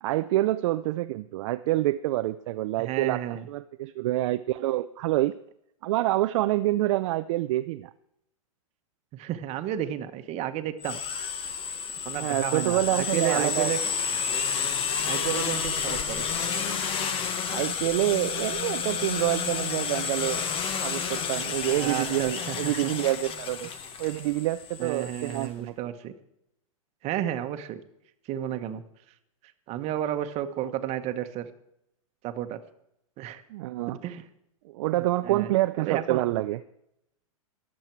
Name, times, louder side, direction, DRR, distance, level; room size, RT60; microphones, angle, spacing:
voice 1, 0.0-3.2 3.5-5.3 5.8-7.9 12.2-13.7 17.5-20.4 20.8-23.7 24.0-25.7 33.5-34.0 34.7-36.6, right 16 dB, 55° right, 10 dB, 0.5 m, -27 dB
voice 2, 2.8-3.5 9.1-11.0 12.0-13.8 15.1-16.3 21.7-22.9 23.6-23.7 24.8-26.1 27.0-27.8 28.2-28.8 29.7-31.5 32.2-32.6 33.2-33.4 34.0-34.3 35.0-36.2, right 11 dB, 35° right, 9 dB, 1.2 m, -32 dB
sound 1, 10.8-25.5, left 6 dB, 30° left, 1.3 m, -30 dB
22.0 x 7.6 x 4.6 m, 0.79 s
hypercardioid pair, 120°, 18 cm